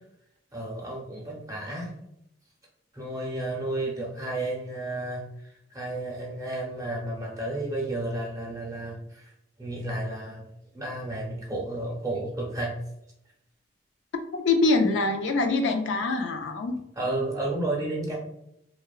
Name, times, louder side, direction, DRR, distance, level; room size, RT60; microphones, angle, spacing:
voice 1, 0.5-1.9 2.9-9.3 9.6-10.5 10.7-12.8 17.0-18.2, right 2 dB, 20° right, -2 dB, 0.5 m, -32 dB
voice 2, 14.3-16.8, left 3 dB, 75° left, 5 dB, 0.3 m, -24 dB
2.8 x 2.1 x 2.3 m, 0.81 s
head